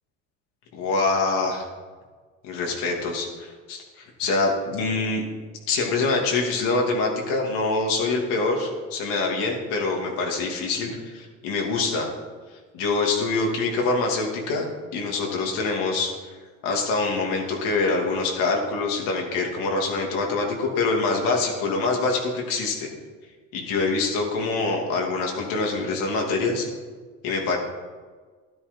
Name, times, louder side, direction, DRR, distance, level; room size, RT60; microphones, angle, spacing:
voice 1, 0.7-1.6 2.4-5.2 5.7-12.1 12.7-14.7 14.9-16.1 16.6-22.9 23.5-26.7 27.2-27.6, left 3 dB, 90° left, 0 dB, 2.8 m, -25 dB
12.5 x 11.0 x 5.4 m, 1.5 s
cardioid pair, 130°, 32 cm